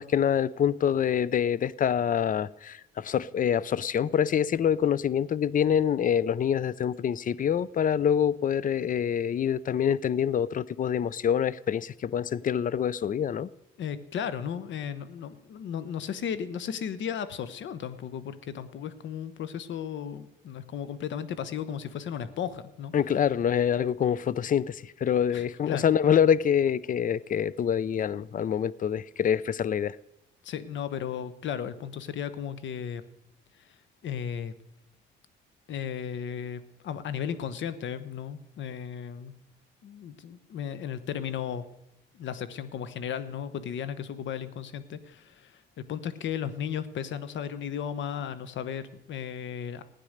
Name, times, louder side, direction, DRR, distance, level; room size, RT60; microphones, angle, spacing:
voice 1, 0.0-13.5 22.9-30.0, left 8 dB, 45° left, 0.5 m, -26 dB
voice 2, 13.8-22.9 25.3-25.8 30.4-33.0 33.6-33.7 34.0-34.5 35.7-39.3 39.8-41.6 42.1-49.8, left 8 dB, 70° left, 1.1 m, -35 dB
15.5 x 9.7 x 6.6 m
cardioid pair, 90°, 20 cm